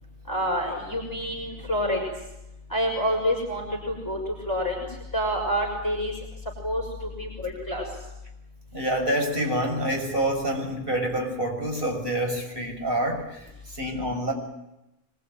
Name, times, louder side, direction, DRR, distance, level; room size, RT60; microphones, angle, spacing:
voice 1, 0.3-2.1 2.7-4.8 5.1-6.1 6.6-7.8, equal, 15° left, -1 dB, 5.9 m, -27 dB
voice 2, 8.7-13.5 13.7-14.3, right 1 dB, 40° right, 2 dB, 6.4 m, -27 dB
24.5 x 22.5 x 9.4 m, 0.90 s
omnidirectional pair, 1.4 m